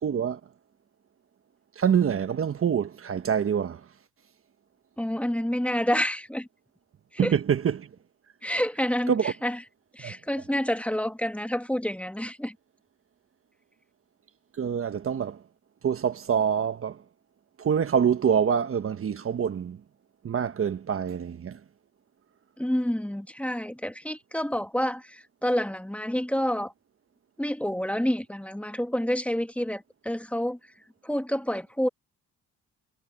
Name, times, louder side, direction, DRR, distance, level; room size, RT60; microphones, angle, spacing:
voice 1, 0.0-0.4 1.8-3.8 7.2-7.9 9.1-9.3 10.0-10.1 14.6-15.4 15.8-17.0 17.6-19.8 20.2-21.6, right 7 dB, 45° right, 1.3 m, -25 dB
voice 2, 5.0-6.5 7.2-7.3 8.4-9.6 9.9-12.5 22.6-26.7 27.4-30.6 31.0-31.9, equal, 5° left, 1.7 m, -28 dB
cardioid pair, 90°, 30 cm